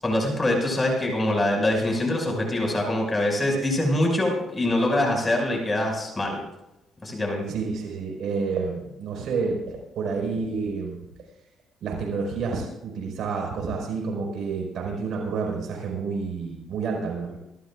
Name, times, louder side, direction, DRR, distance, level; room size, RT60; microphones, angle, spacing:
voice 1, 0.0-6.4 7.0-7.4, left 1 dB, 20° left, 1 dB, 6.2 m, -24 dB
voice 2, 7.5-11.0 11.8-17.4, right 4 dB, 70° right, 0 dB, 5.1 m, -29 dB
26.5 x 13.0 x 2.5 m, 0.91 s
cardioid pair, 90°, 0 cm